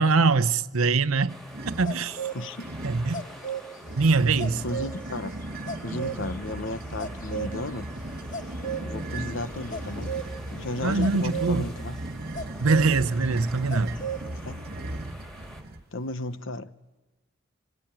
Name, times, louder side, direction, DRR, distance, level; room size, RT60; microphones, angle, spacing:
voice 1, 0.0-1.3 1.8-2.2 2.8-3.2 4.0-4.6 10.8-11.7 12.6-14.0, right 4 dB, 80° right, 0.8 m, -23 dB
sound 1, 1.3-15.6, equal, ahead, 3.7 m, -47 dB
sound 2, 1.5-2.0 2.6-3.2 3.8-15.8, right 1 dB, 45° right, 1.0 m, -37 dB
sound 3, 1.8-2.4 2.8-11.6 12.3-12.9 13.2-13.3 13.7-14.2, right 5 dB, 40° left, 1.2 m, -36 dB
voice 2, 2.3-2.7 4.6-5.3 5.8-7.9 8.8-10.1 10.5-12.0 14.4-14.6 15.9-16.7, left 2 dB, 60° left, 1.0 m, -34 dB
25.0 x 19.5 x 9.0 m
head